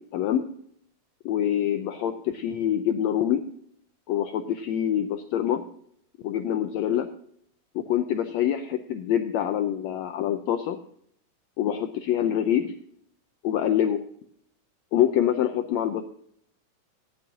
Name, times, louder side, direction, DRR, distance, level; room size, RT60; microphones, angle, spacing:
voice 1, 0.1-0.5 1.2-3.5 4.1-5.6 6.2-7.1 7.7-10.8 11.6-12.7 13.4-14.0 14.9-16.0, left 10 dB, 90° left, 7 dB, 1.5 m, -25 dB
15.0 x 10.5 x 2.6 m, 0.66 s
omnidirectional pair, 3.8 m